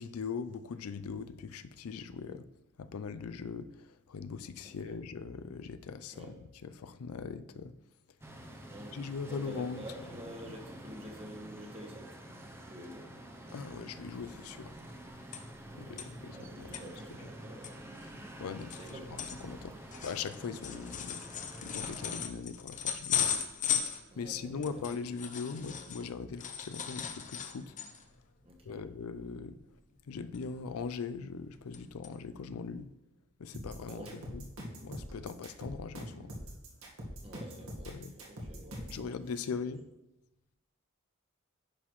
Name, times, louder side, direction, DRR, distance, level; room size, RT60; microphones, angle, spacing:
voice 1, 0.0-2.4 2.8-7.7 8.9-9.8 13.5-14.7 15.8-16.8 18.4-21.2 21.6-23.3 24.2-27.8 28.6-29.6 30.1-32.9 33.4-34.4 34.8-36.3 37.8-38.1 38.9-39.8, left 5 dB, 85° left, 12 dB, 0.4 m, -40 dB
sound 1, 8.2-22.3, right 1 dB, 10° right, 0.6 m, -48 dB
voice 2, 8.7-9.0 9.3-12.1 12.7-13.1 15.7-16.0 16.3-17.7 18.8-19.1 20.7-20.8 24.1-24.8 25.7-26.0 28.4-28.8 33.9-34.2 37.2-39.1 39.6-39.7, right 1 dB, 25° right, 2 dB, 1.1 m, -48 dB
sound 2, 15.3-15.7 16.0-16.1 16.5-16.8 17.3-17.4 17.6-26.1 26.4-28.1 28.5-28.7 29.0-29.3 30.3-30.9 31.3-31.8 32.0-32.1 32.8-32.9, left 8 dB, 35° left, 0.7 m, -37 dB
sound 3, 33.5-39.0, equal, 70° right, 1.7 m, -43 dB
10.0 x 5.8 x 3.1 m, 0.95 s
head